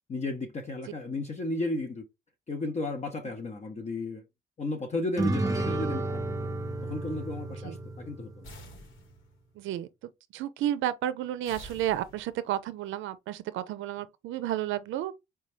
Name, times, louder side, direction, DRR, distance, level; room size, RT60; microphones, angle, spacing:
voice 1, 0.1-2.1 2.5-4.2 4.6-6.2 6.8-8.5, left 2 dB, 35° left, 0.7 m, -34 dB
sound 1, 5.2-8.8, right 2 dB, 15° right, 0.6 m, -32 dB
sound 2, 8.4-9.4 11.4-12.5, equal, 85° left, 1.1 m, -49 dB
voice 2, 9.6-9.9 10.3-15.1, right 12 dB, 80° right, 0.4 m, -31 dB
4.0 x 2.2 x 3.0 m
cardioid pair, 90°, 20 cm